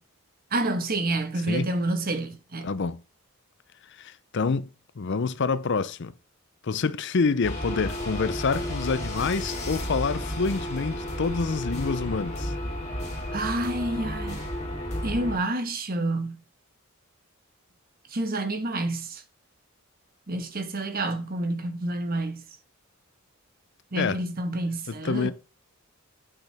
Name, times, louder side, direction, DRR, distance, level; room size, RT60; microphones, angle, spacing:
voice 1, 0.5-2.7 13.3-14.4 15.0-16.4 18.1-19.2 20.3-22.4 23.9-25.3, right 2 dB, 40° right, 1.3 m, -28 dB
voice 2, 2.6-3.0 4.0-6.1 6.6-12.5 24.0-24.2 24.9-25.3, left 4 dB, 55° left, 0.5 m, -27 dB
sound 1, 7.4-15.4, left 1 dB, 30° left, 3.2 m, -32 dB
9.0 x 7.9 x 3.4 m
head